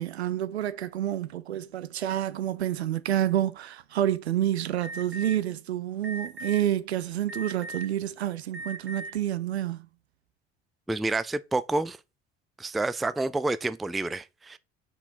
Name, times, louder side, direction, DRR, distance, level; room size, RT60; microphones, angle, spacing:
voice 1, 0.0-9.9, right 12 dB, 80° right, 0.7 m, -28 dB
Alarm, 4.8-5.3 6.0-6.6 7.3-7.9 8.5-9.1, right 2 dB, 40° right, 1.9 m, -38 dB
voice 2, 10.9-12.0 12.6-14.6, right 2 dB, ahead, 0.3 m, -29 dB
6.0 x 5.5 x 4.4 m
figure-of-eight pair, 55°, 32 cm